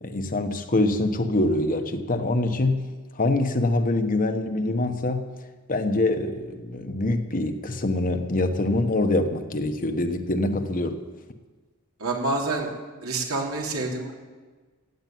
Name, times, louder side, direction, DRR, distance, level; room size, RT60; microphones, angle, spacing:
voice 1, 0.0-2.8 3.2-5.3 5.7-11.0, left 2 dB, 40° left, 7 dB, 1.1 m, -24 dB
voice 2, 12.0-12.7 13.0-14.1, right 2 dB, 85° right, -1 dB, 3.1 m, -27 dB
15.0 x 8.9 x 9.2 m, 1.4 s
head